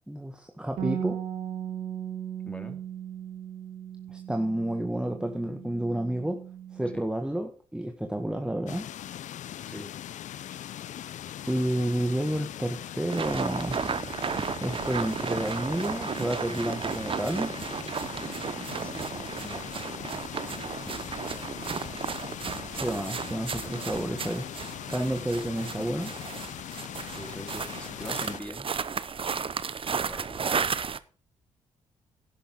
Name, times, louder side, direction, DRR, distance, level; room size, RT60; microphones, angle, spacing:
voice 1, 0.1-1.2 4.1-6.4 6.7-8.9 11.5-13.8 14.6-17.5 22.8-24.5 24.9-26.1, right 1 dB, 5° right, 5 dB, 1.8 m, -30 dB
Bass guitar, 0.8-7.0, right 9 dB, 70° right, 2.1 m, -37 dB
voice 2, 2.4-2.8 6.9-7.0 9.7-9.9 18.7-19.7 20.8-21.1 27.0-28.7 30.0-30.5, left 1 dB, 10° left, 5 dB, 3.8 m, -43 dB
sound 1, 8.7-28.4, left 11 dB, 65° left, 0.6 m, -40 dB
sound 2, 13.1-31.0, right 6 dB, 40° right, 0.9 m, -34 dB
11.0 x 11.0 x 3.8 m, 0.39 s
supercardioid pair, 50°, 13 cm